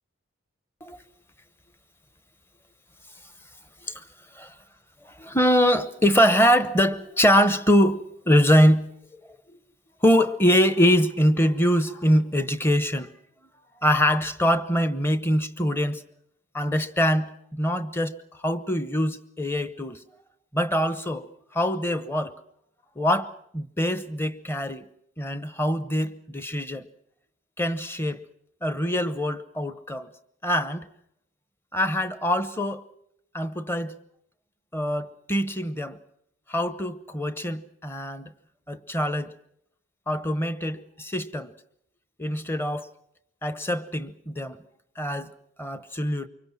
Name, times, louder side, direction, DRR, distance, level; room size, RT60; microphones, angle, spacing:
voice 1, 5.0-9.2 10.0-13.1 13.8-16.0 16.5-20.0 20.5-22.3 23.0-24.9 25.2-26.9 27.6-28.2 28.6-30.1 30.4-30.9 31.7-32.8 33.3-33.9 34.7-36.0 36.5-38.3 38.7-39.3 40.1-41.5 42.2-42.9 43.4-44.6 45.0-45.3 45.6-46.3, equal, 10° left, 0.9 m, -24 dB
25.0 x 23.5 x 6.0 m
head